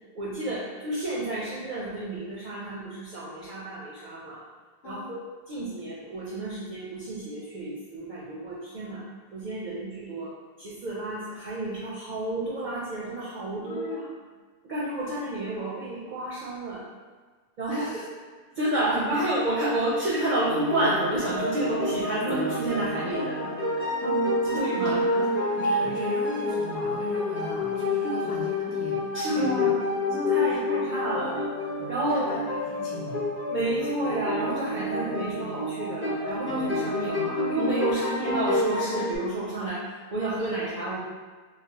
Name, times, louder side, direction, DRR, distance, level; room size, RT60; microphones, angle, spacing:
voice 1, 0.1-4.4 4.8-5.2 5.5-9.0 9.3-10.3 10.6-13.9 14.7-16.9 17.6-17.8 18.6-23.4 23.7-23.8 24.4-25.0 28.0-28.1 29.1-29.8 30.1-31.4 31.9-32.3 33.5-39.8 40.1-41.0, right 1 dB, 55° right, -7 dB, 0.6 m, -30 dB
voice 2, 4.8-5.2 13.6-14.2 17.7-18.1 18.6-18.9 24.5-29.7 30.4-30.6 32.1-33.2, left 1 dB, 70° left, -3 dB, 0.8 m, -38 dB
sound 1, 20.2-39.2, left 2 dB, 15° left, 0.7 m, -28 dB
3.1 x 2.1 x 2.8 m, 1.4 s
omnidirectional pair, 1.0 m